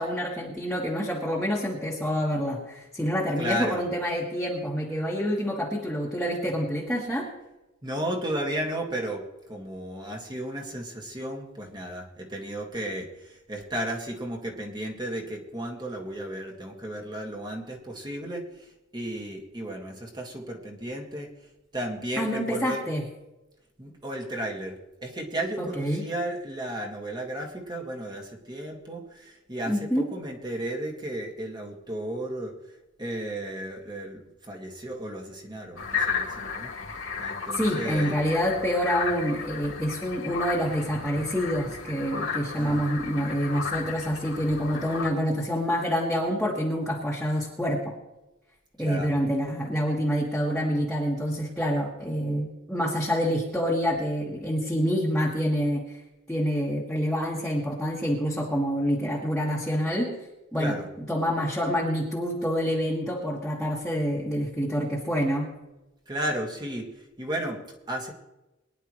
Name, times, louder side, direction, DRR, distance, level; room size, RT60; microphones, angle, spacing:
voice 1, 0.0-7.3 22.2-23.0 25.6-26.0 29.7-30.0 37.5-47.9 48.8-56.0 56.3-60.1 60.5-60.8 61.1-65.5, equal, 5° left, -5 dB, 1.8 m, -27 dB
voice 2, 3.4-3.8 7.8-21.3 21.7-22.8 23.8-32.5 33.0-36.7 37.2-38.1 42.6-42.8 48.8-49.1 60.6-60.9 66.1-66.9 67.2-67.6 67.9-68.1, right 1 dB, 20° right, 1 dB, 2.1 m, -34 dB
sound 1, 35.8-45.1, left 5 dB, 75° left, 2.8 m, -34 dB
22.5 x 10.5 x 3.2 m, 1.0 s
head